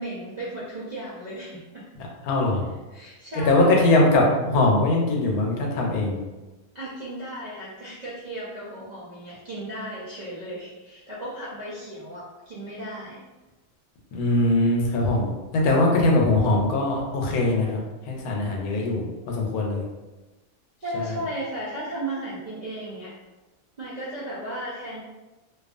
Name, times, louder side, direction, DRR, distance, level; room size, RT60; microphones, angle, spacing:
voice 1, 0.0-1.9 2.9-4.0 6.7-13.2 20.8-23.1 23.8-25.0, right 1 dB, 65° right, -9 dB, 0.4 m, -35 dB
voice 2, 2.0-2.6 3.5-6.2 14.1-17.8 18.1-19.8 20.9-21.2, left 2 dB, 90° left, -1 dB, 1.1 m, -21 dB
2.6 x 2.3 x 2.4 m, 1.1 s
omnidirectional pair, 1.5 m